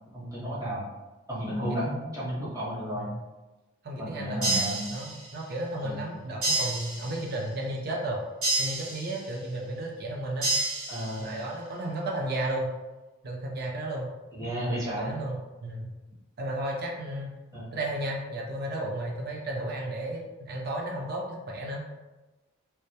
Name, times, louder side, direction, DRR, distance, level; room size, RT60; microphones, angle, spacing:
voice 1, 0.1-0.9 1.3-3.1 3.9-4.8 5.8-6.0 10.9-11.4 14.3-15.1 17.5-17.8, equal, 15° right, -9 dB, 0.8 m, -33 dB
voice 2, 1.5-1.9 2.9-3.2 3.8-8.2 8.6-10.5 11.2-12.7 13.2-14.1 14.8-15.3 15.6-15.9 16.4-17.3 17.7-21.8, right 1 dB, 45° right, -1 dB, 0.4 m, -33 dB
sound 1, 4.4-5.5 6.4-7.5 8.4-9.5 10.4-11.5, right 2 dB, 80° right, 1.0 m, -30 dB
2.1 x 2.1 x 2.7 m, 1.1 s
head